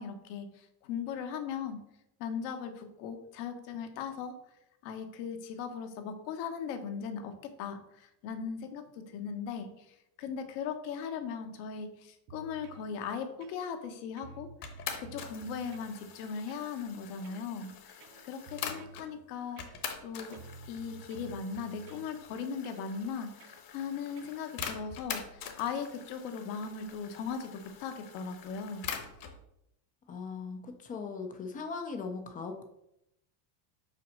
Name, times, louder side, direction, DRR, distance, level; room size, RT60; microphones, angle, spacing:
voice 1, 0.0-1.8 2.2-4.3 4.8-14.5 15.0-20.4 20.7-28.9, left 6 dB, 75° left, 7 dB, 1.2 m, -38 dB
sound 1, 12.3-12.9 13.4-13.9 14.2-16.0 16.5-16.7 17.2-17.5 18.0-19.1 19.6-20.0 20.3-22.1 22.6-22.9 23.4-23.6 24.2-24.4, right 4 dB, 50° right, 0.7 m, -51 dB
sound 2, 14.6-19.1 19.6-29.4, left 7 dB, 40° left, 1.0 m, -44 dB
voice 2, 30.1-32.6, left 4 dB, 20° left, 6 dB, 0.3 m, -39 dB
5.7 x 4.1 x 6.2 m, 0.81 s
cardioid pair, 160°, 49 cm